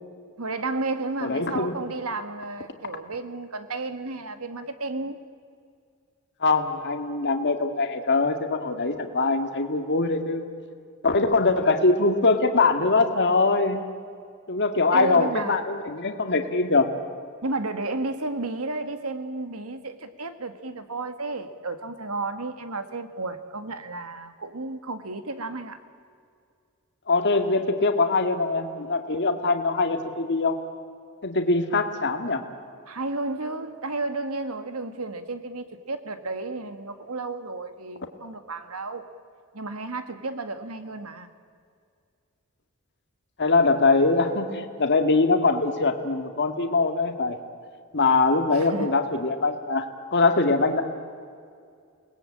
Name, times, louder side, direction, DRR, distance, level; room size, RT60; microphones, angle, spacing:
voice 1, 0.4-5.2 14.9-15.6 17.4-25.8 32.9-39.1 39.5-41.3 48.5-48.9, right 3 dB, 70° right, 1.7 m, -32 dB
voice 2, 1.2-1.7 6.4-10.4 11.0-13.8 14.5-16.9 27.1-30.6 31.2-32.4 43.4-47.4 47.9-50.8, left 3 dB, 55° left, 1.9 m, -22 dB
30.0 x 20.0 x 8.7 m
head